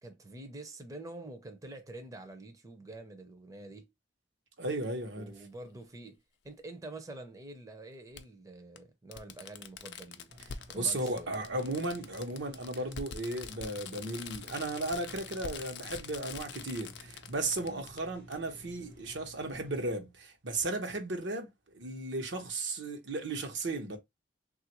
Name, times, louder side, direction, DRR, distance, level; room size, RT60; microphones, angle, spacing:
voice 1, 0.0-3.9 5.2-6.2 6.4-10.3 10.7-11.4 17.6-17.8, right 2 dB, 20° right, 0.5 m, -47 dB
voice 2, 4.6-5.3 10.7-24.0, right 2 dB, 80° right, 0.9 m, -35 dB
Fireworks, 4.8-4.9 6.5-6.6 8.2-8.3 8.8-8.9 9.1-18.0 18.3-18.4, left 7 dB, 65° left, 0.4 m, -45 dB
sound 1, 10.3-19.9, equal, 55° right, 1.0 m, -55 dB
3.3 x 2.4 x 2.9 m
head